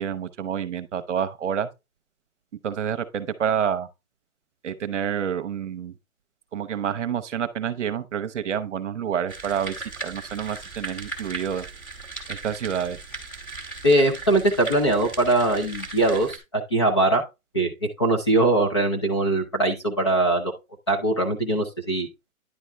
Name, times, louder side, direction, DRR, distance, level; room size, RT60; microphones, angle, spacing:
voice 1, 0.0-1.7 2.6-3.9 4.6-5.9 6.5-11.7 12.3-13.0, right 8 dB, 55° right, 0.9 m, -28 dB
sound 1, 9.3-16.4, right 4 dB, 5° left, 1.0 m, -38 dB
voice 2, 13.8-17.2 17.5-17.7 18.0-20.5 20.9-22.1, right 2 dB, 20° left, 0.6 m, -21 dB
10.0 x 4.2 x 3.4 m
hypercardioid pair, 170°, 42 cm